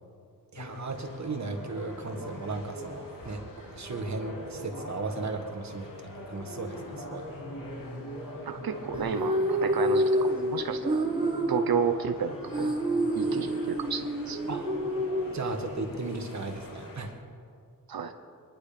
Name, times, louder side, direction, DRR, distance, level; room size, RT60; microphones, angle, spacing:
sound 1, 0.5-17.1, left 1 dB, 65° left, 2.5 m, -42 dB
voice 1, 0.5-7.3 14.5-14.7 15.3-17.1, right 3 dB, 50° right, 4 dB, 1.6 m, -36 dB
voice 2, 8.5-11.0 11.5-12.7 13.1-14.4 17.9-18.1, right 6 dB, 75° right, 7 dB, 1.0 m, -31 dB
sound 2, 8.9-16.0, right 1 dB, 15° right, 1.4 m, -28 dB
24.5 x 10.5 x 5.1 m, 2.3 s
wide cardioid pair, 170°, 36 cm